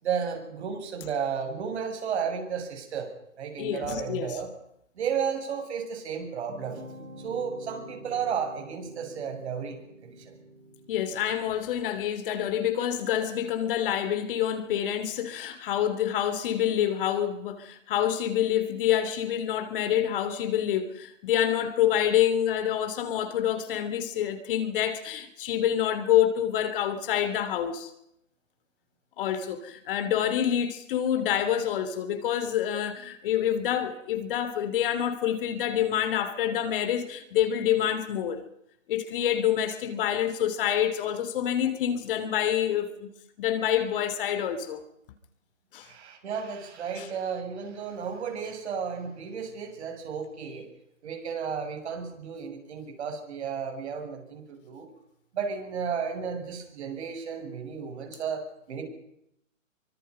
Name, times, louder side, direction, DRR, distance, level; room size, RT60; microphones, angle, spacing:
voice 1, 0.0-3.1 3.4-4.5 5.0-6.8 7.2-9.8 10.0-10.4 45.8-50.7 51.0-54.9 55.3-58.8, right 6 dB, 55° right, 7.5 m, -33 dB
voice 2, 3.6-4.4 10.9-27.9 29.2-38.4 38.9-43.1 43.4-44.8 45.7-45.9 47.0-47.1, left 10 dB, 40° left, 3.0 m, -27 dB
sound 1, 6.5-12.0, right 1 dB, 90° right, 3.1 m, -47 dB
25.5 x 24.5 x 5.5 m
hypercardioid pair, 140°, 40 cm